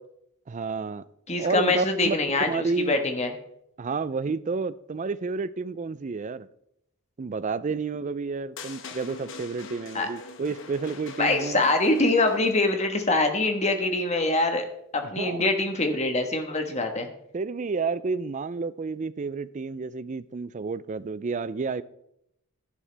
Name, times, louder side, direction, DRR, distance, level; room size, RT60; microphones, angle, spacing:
voice 1, 0.5-1.0 1.4-2.1 2.5-3.0 3.8-6.5 7.2-11.6 15.0-15.4 17.3-21.8, right 4 dB, 35° right, 0.4 m, -30 dB
voice 2, 1.3-3.3 9.9-10.1 11.2-14.7 14.9-17.1, left 2 dB, 30° left, 1.3 m, -24 dB
sound 1, 8.6-12.8, left 4 dB, 60° left, 1.0 m, -43 dB
12.0 x 11.0 x 3.4 m
head